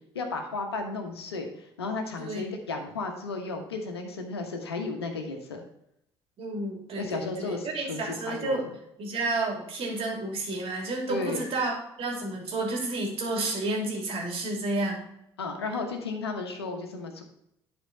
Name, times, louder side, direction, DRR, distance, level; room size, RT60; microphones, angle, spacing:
voice 1, 0.1-5.6 7.0-8.7 11.1-11.5 15.4-17.2, left 3 dB, 80° left, 5 dB, 1.1 m, -34 dB
voice 2, 6.4-8.6 9.0-11.7 12.0-15.1, right 2 dB, 45° right, 0 dB, 2.8 m, -31 dB
11.5 x 4.4 x 3.9 m, 0.78 s
figure-of-eight pair, 55°, 13 cm